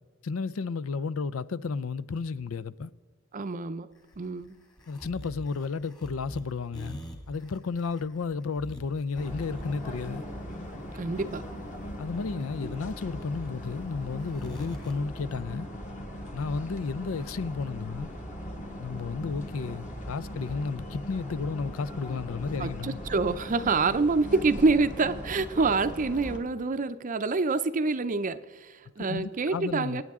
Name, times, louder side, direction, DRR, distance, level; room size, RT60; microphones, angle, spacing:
voice 1, 0.2-2.9 4.9-7.0 7.3-10.2 12.0-15.7 16.3-18.1 18.8-23.0 29.0-30.0, left 4 dB, 75° left, 0.5 m, -32 dB
voice 2, 3.3-3.9 4.2-4.6 10.9-11.4 22.6-30.0, right 3 dB, 40° right, 0.5 m, -27 dB
sound 1, 3.9-14.9, equal, 20° left, 2.0 m, -45 dB
sound 2, 9.1-26.4, equal, 35° left, 1.8 m, -39 dB
25.5 x 9.5 x 3.6 m
head